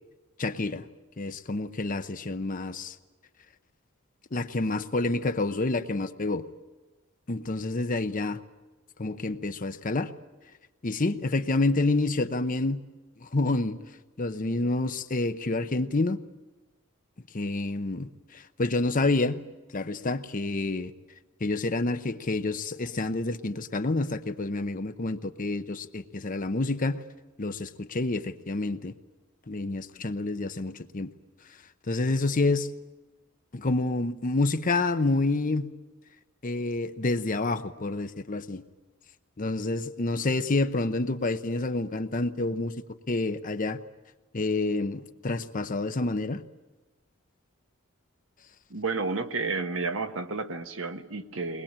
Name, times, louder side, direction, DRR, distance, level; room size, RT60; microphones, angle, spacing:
voice 1, 0.4-0.9 1.2-3.0 4.3-6.4 7.3-8.4 9.0-10.1 10.8-12.8 13.2-13.8 14.2-16.2 17.3-19.4 19.7-20.9 21.4-27.0 27.4-28.9 29.5-31.1 31.9-32.7 33.5-35.7 36.4-38.6 39.4-42.7 43.1-43.8 44.3-46.4, left 2 dB, 40° left, 10 dB, 0.8 m, -28 dB
voice 2, 48.7-51.6, right 3 dB, 70° right, 7 dB, 1.3 m, -31 dB
22.5 x 20.5 x 8.7 m, 1.2 s
head